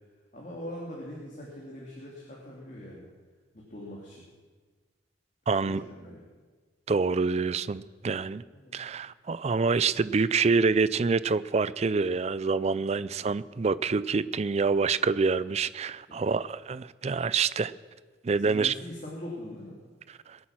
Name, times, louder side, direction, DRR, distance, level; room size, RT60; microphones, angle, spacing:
voice 1, 0.3-3.1 3.5-4.3 5.5-6.2 8.5-8.8 16.1-16.2 18.4-19.8, left 1 dB, 40° left, -4 dB, 2.6 m, -42 dB
voice 2, 5.5-5.8 6.9-8.4 8.7-17.7 18.2-18.7 20.3-20.4, right 4 dB, 35° right, 17 dB, 0.4 m, -26 dB
21.0 x 8.5 x 6.0 m, 1.4 s
head